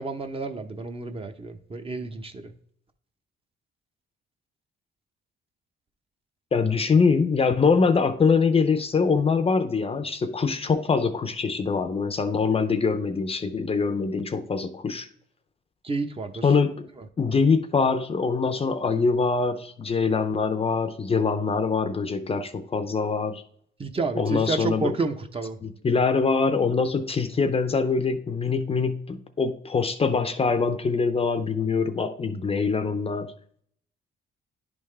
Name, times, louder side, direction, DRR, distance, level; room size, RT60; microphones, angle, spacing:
voice 1, 0.0-2.5 15.8-16.5 17.0-17.1 23.8-25.6, right 3 dB, 30° right, 6 dB, 0.8 m, -30 dB
voice 2, 6.5-15.1 16.4-16.9 17.2-23.4 24.1-24.9 25.6-33.3, left 5 dB, 30° left, 9 dB, 0.5 m, -24 dB
10.5 x 3.5 x 3.2 m, 0.63 s
cardioid pair, 90°, 20 cm